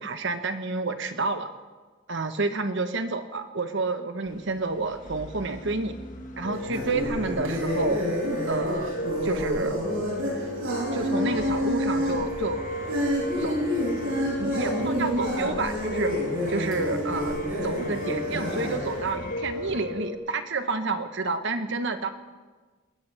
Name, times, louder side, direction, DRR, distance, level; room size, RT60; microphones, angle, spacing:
voice 1, 0.0-1.5 2.1-6.0 6.4-8.0 8.4-8.9 9.2-9.8 10.9-12.6 13.4-13.6 14.4-16.1 16.5-17.4 17.6-22.1, right 3 dB, 65° right, 8 dB, 1.2 m, -29 dB
sound 1, 4.3-19.8, left 1 dB, 40° left, 1.6 m, -43 dB
Piano, 6.4-20.2, left 1 dB, 75° left, 2.5 m, -34 dB
sound 2, 6.5-19.1, equal, 85° right, 7.2 m, -29 dB
21.5 x 19.0 x 3.5 m, 1.4 s
head